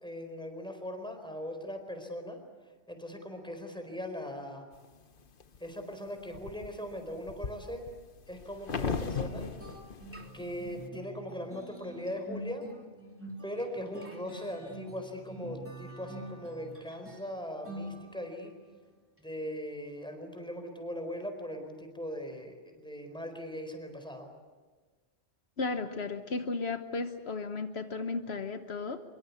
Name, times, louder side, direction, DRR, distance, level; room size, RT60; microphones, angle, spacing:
voice 1, 0.0-2.4 2.9-4.7 5.6-7.9 8.3-9.5 10.3-12.6 13.4-18.5 19.2-24.3, equal, 5° left, 5 dB, 4.3 m, -40 dB
sound 1, 4.8-5.6 6.1-10.9, left 5 dB, 55° left, 1.2 m, -38 dB
sound 2, 8.8-18.5, right 1 dB, 10° right, 3.3 m, -46 dB
voice 2, 25.6-29.0, left 3 dB, 75° left, 8 dB, 1.4 m, -34 dB
25.0 x 23.0 x 8.4 m, 1.3 s
omnidirectional pair, 1.1 m